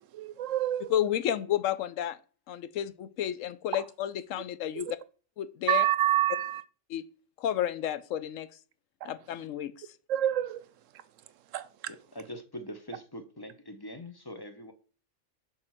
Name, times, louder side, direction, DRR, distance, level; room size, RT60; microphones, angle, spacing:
voice 1, 0.1-0.9 4.8-4.9 5.7-6.6 9.0-9.1 10.1-10.6 11.5-11.7, right 12 dB, 80° right, 1.0 m, -27 dB
voice 2, 0.9-2.2 2.5-5.0 5.4-5.8 6.9-7.0 7.4-8.5 9.0-9.9, left 11 dB, 80° left, 1.0 m, -31 dB
voice 3, 11.9-14.7, equal, 20° left, 0.7 m, -43 dB
6.4 x 3.9 x 6.0 m
omnidirectional pair, 1.3 m